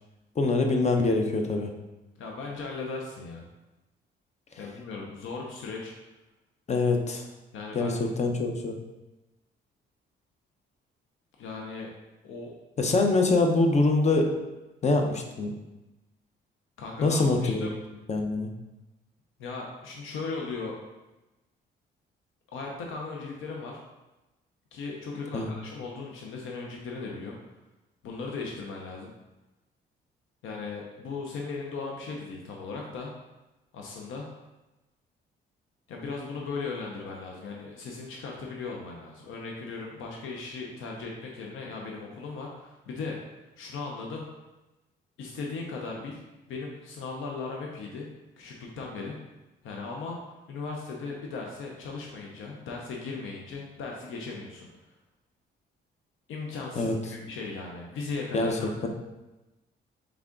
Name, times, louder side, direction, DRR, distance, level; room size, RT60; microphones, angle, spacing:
voice 1, 0.4-1.7 6.7-7.3 7.7-8.8 12.8-14.3 14.8-15.5 17.0-17.7 18.1-18.5 25.3-25.5 56.8-56.9 58.3-58.5, left 3 dB, 35° left, 3 dB, 0.7 m, -24 dB
voice 2, 2.2-3.5 4.6-5.9 7.5-7.9 11.4-11.9 12.2-12.5 16.8-17.7 19.4-20.8 22.5-23.8 24.7-27.4 28.0-29.1 30.4-33.1 33.7-34.3 35.9-43.2 43.6-44.2 45.2-46.2 46.5-48.1 48.4-49.2 49.6-50.2 50.5-54.7 56.3-58.9, left 4 dB, 80° left, -1 dB, 0.7 m, -37 dB
3.6 x 3.4 x 3.7 m, 1.0 s
cardioid pair, 90°, 20 cm